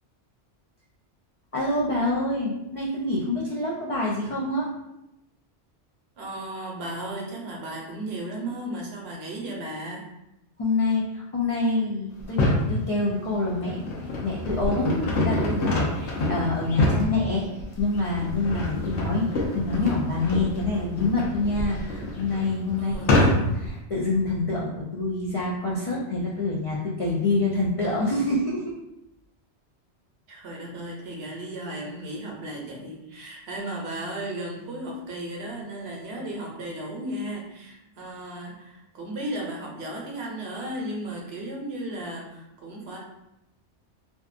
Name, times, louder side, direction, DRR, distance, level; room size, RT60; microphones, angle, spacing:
voice 1, 1.5-4.7 10.6-17.5 17.8-23.0 23.2-28.6, left 2 dB, 60° left, -6 dB, 0.3 m, -26 dB
voice 2, 6.2-10.0 18.8-19.3 22.8-23.4 30.3-43.0, right 1 dB, 70° right, -1 dB, 0.8 m, -35 dB
sound 1, 12.2-12.7 13.3-23.7, left 1 dB, 75° left, 1.0 m, -26 dB
2.6 x 2.3 x 2.4 m, 0.89 s
omnidirectional pair, 1.2 m